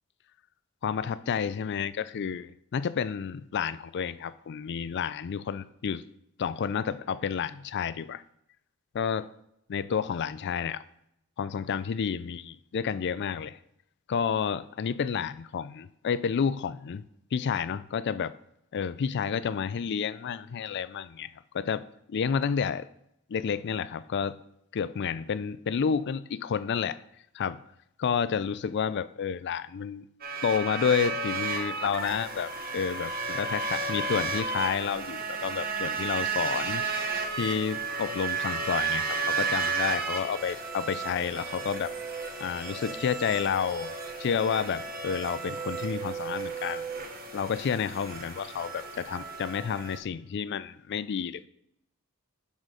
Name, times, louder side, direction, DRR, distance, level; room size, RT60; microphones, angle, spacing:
voice 1, 0.8-6.0 6.4-8.2 8.9-9.3 9.7-10.8 11.4-13.6 14.1-17.0 17.3-18.3 18.7-22.9 23.3-24.4 24.7-27.0 27.3-27.6 28.0-30.1 30.4-36.8 37.4-41.9 42.4-43.9 44.2-46.9 47.3-51.5, left 7 dB, 50° left, 0.4 m, -30 dB
sound 1, 30.2-50.0, right 4 dB, 45° right, 1.1 m, -33 dB
11.0 x 4.2 x 5.0 m
head